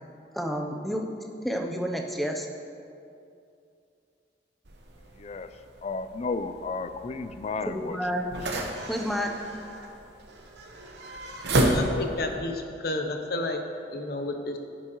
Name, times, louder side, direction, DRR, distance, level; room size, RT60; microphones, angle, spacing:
voice 1, 0.3-1.1 1.4-2.5 7.7-8.3 8.9-9.3, equal, ahead, 1 dB, 0.7 m, -29 dB
sound 1, 4.7-12.4, right 1 dB, 75° right, 1.0 m, -32 dB
voice 2, 5.1-8.3, left 4 dB, 40° left, 11 dB, 0.4 m, -34 dB
voice 3, 11.6-13.6 13.9-14.6, left 2 dB, 60° left, 4 dB, 0.8 m, -31 dB
11.0 x 10.0 x 3.0 m, 2.5 s
head